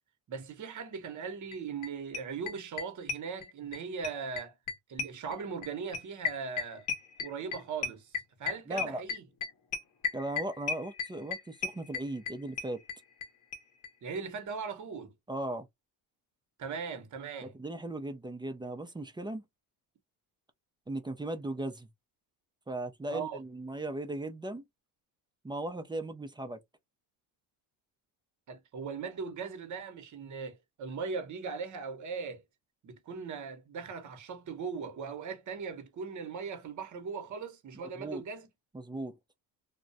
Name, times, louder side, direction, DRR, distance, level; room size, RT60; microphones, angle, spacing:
voice 1, 0.3-4.5 4.9-6.9 7.2-8.1 8.4-9.2 14.0-15.1 16.6-17.5 23.1-23.4 28.5-32.4 32.8-38.5, right 5 dB, 40° right, 0.9 m, -39 dB
sound 1, 1.5-1.6 1.8-3.8 4.0-13.3 13.5-13.6 13.8-13.9 14.1-14.2, left 6 dB, 40° left, 0.8 m, -34 dB
voice 2, 8.7-9.0 10.1-12.8 15.3-15.7 17.4-19.4 20.9-21.9 22.7-24.6 25.4-26.6 37.7-38.2 38.7-39.1, right 1 dB, 10° right, 0.4 m, -37 dB
2.2 x 2.1 x 2.6 m
supercardioid pair, 90°, 47 cm